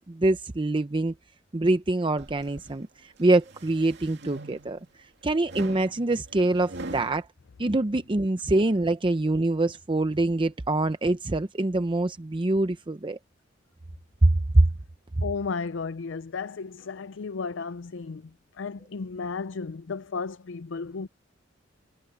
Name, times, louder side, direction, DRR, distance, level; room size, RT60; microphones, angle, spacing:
voice 1, 0.1-1.1 1.5-4.8 5.2-7.3 7.6-13.2 14.2-14.7 15.2-15.3, right 2 dB, 25° right, 0.6 m, -24 dB
sound 1, 2.2-2.7 3.2-4.9 5.4-7.2, right 2 dB, 65° right, 2.5 m, -42 dB
voice 2, 15.2-18.2 18.6-21.1, left 4 dB, 70° left, 0.5 m, -34 dB
head